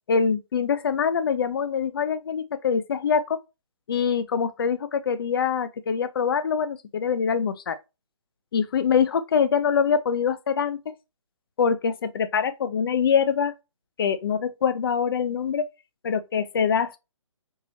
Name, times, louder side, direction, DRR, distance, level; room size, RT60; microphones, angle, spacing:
voice 1, 0.1-3.4 3.9-7.8 8.5-10.8 11.6-13.5 14.0-15.7 16.0-17.0, left 6 dB, 45° left, 0.6 m, -24 dB
4.6 x 3.0 x 3.0 m
figure-of-eight pair, 145°, 17 cm